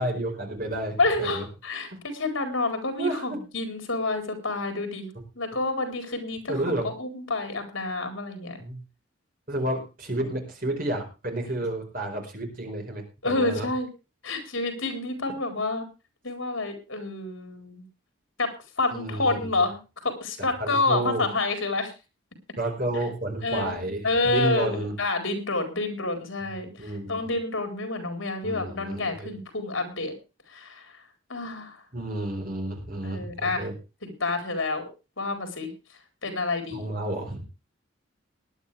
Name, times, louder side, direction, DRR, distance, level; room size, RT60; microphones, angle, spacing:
voice 1, 0.0-1.4 3.0-3.4 6.5-6.9 8.6-8.8 9.5-13.7 18.9-19.5 20.6-21.2 22.6-24.9 26.8-27.2 28.4-29.3 31.9-33.7 36.7-37.4, right 1 dB, 45° right, 3 dB, 4.8 m, -31 dB
voice 2, 1.0-8.6 13.2-13.9 14.2-15.9 16.2-17.8 18.4-18.5 18.8-21.9 23.4-30.1 30.5-30.9 31.3-31.8 33.0-33.7 34.0-34.8 35.2-35.7 36.2-36.9, left 2 dB, 75° left, 6 dB, 4.3 m, -28 dB
19.0 x 11.0 x 3.4 m, 0.30 s
head